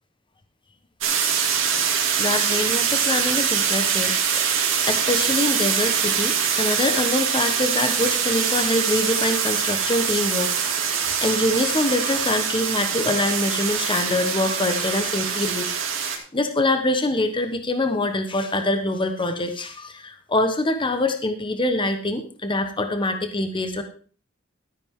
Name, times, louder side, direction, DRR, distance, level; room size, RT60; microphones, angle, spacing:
sound 1, 1.0-16.2, right 7 dB, 80° right, 2.4 m, -23 dB
voice 1, 2.2-10.7 11.2-15.7 16.3-23.8, left 2 dB, 25° left, 7 dB, 1.1 m, -24 dB
12.5 x 10.0 x 3.7 m, 0.40 s
head